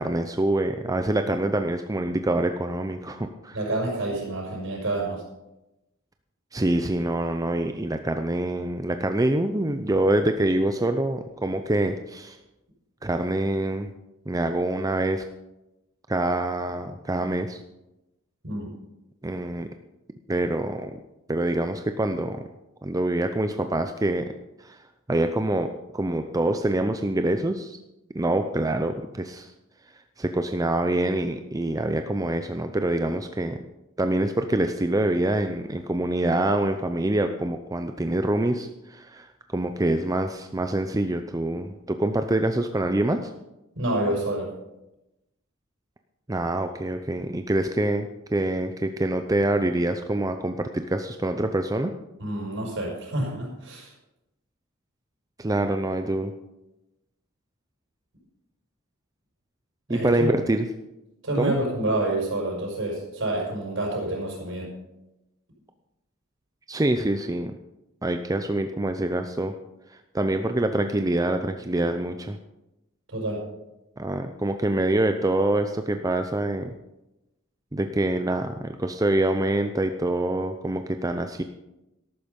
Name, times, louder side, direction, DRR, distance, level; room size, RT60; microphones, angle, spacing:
voice 1, 0.0-3.6 6.5-12.4 13.0-13.9 14.3-15.2 16.1-17.6 19.2-19.7 20.3-20.9 21.3-22.4 22.8-24.2 24.6-24.8 25.1-27.8 28.1-29.5 30.2-33.6 34.0-39.3 39.5-43.3 46.3-51.9 55.4-56.3 59.9-60.7 61.4-61.6 66.7-67.5 68.0-69.5 69.9-72.4 74.0-76.7 77.7-81.4, right 1 dB, 15° right, 7 dB, 0.6 m, -25 dB
voice 2, 3.5-5.2 18.4-18.7 43.8-44.5 52.2-53.9 59.9-60.3 61.2-64.7 73.1-73.4, right 1 dB, 65° right, -1 dB, 6.0 m, -28 dB
13.5 x 12.0 x 5.3 m, 0.95 s
head